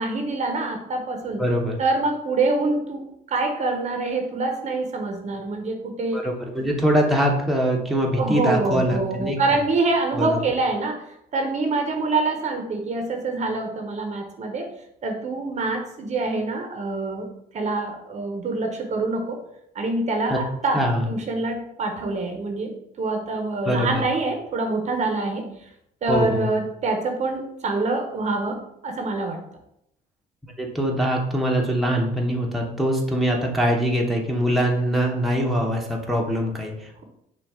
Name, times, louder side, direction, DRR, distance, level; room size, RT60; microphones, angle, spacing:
voice 1, 0.0-1.4 1.8-6.2 8.2-11.0 11.3-14.7 15.0-17.3 17.5-19.4 19.7-20.8 21.1-25.5 26.0-29.4, right 3 dB, 45° right, 4 dB, 0.7 m, -25 dB
voice 2, 1.4-1.8 6.1-9.4 10.1-10.4 20.3-20.4 20.7-21.1 23.7-24.0 26.1-26.5 30.6-37.0, equal, ahead, -1 dB, 0.8 m, -23 dB
6.1 x 2.3 x 3.5 m, 0.78 s
cardioid pair, 110°, 17 cm